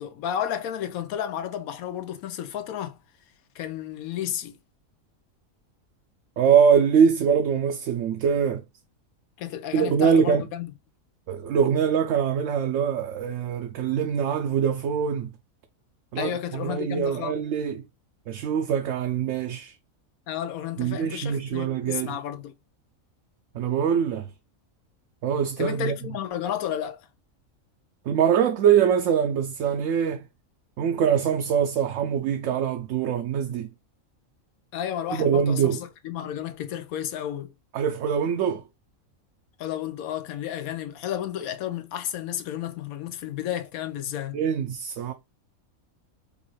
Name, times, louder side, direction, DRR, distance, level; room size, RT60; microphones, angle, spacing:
voice 1, 0.0-3.0 3.5-4.6 9.4-10.7 16.2-17.4 20.3-22.5 25.6-27.0 34.7-37.5 39.6-44.4, left 10 dB, 90° left, 1.1 m, -32 dB
voice 2, 6.4-8.6 9.7-10.4 11.3-15.3 16.1-17.8 18.3-19.7 20.8-22.2 23.5-24.3 25.2-26.0 28.1-30.2 30.8-33.7 35.1-35.8 37.7-38.6 44.3-45.1, right 7 dB, 70° right, 0.9 m, -23 dB
5.2 x 2.4 x 3.1 m
omnidirectional pair, 1.4 m